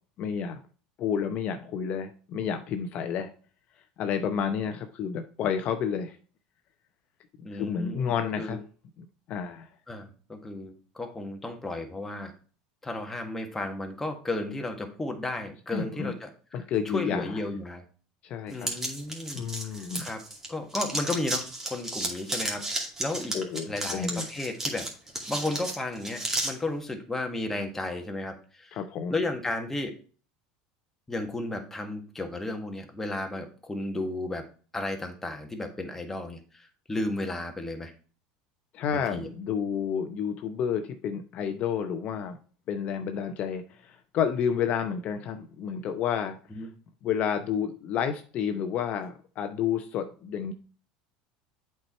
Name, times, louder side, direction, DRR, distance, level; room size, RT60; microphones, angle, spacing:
voice 1, 0.2-0.6 1.0-3.3 4.0-6.2 7.5-8.6 9.0-9.7 15.7-16.1 16.5-17.4 18.2-18.7 19.4-20.1 23.3-24.3 28.7-29.1 38.7-42.4 42.7-46.4 47.0-50.5, left 7 dB, 50° left, 7 dB, 0.7 m, -30 dB
voice 2, 7.4-8.6 9.9-12.3 12.8-17.8 18.5-19.4 19.8-20.2 20.5-22.7 23.0-23.4 23.7-24.9 25.3-28.8 29.1-29.9 31.1-34.4 34.7-37.9 38.9-39.3 46.5-46.7, left 2 dB, 10° left, 4 dB, 1.6 m, -34 dB
sound 1, 18.6-20.5 20.7-26.5, right 1 dB, 15° right, 2.3 m, -32 dB
7.7 x 4.6 x 4.3 m, 0.39 s
supercardioid pair, 105°, 3 cm